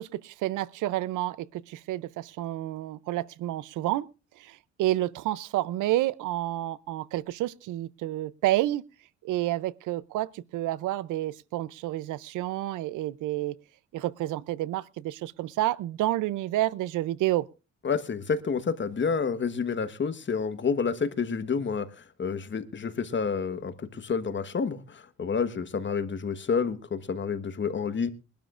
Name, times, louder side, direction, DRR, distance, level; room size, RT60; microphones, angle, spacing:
voice 1, 0.0-4.1 4.4-8.8 9.2-13.5 13.9-17.5, right 15 dB, 85° right, 0.6 m, -29 dB
voice 2, 17.8-28.1, left 5 dB, 40° left, 1.3 m, -29 dB
22.5 x 12.0 x 2.5 m
cardioid pair, 90°, 30 cm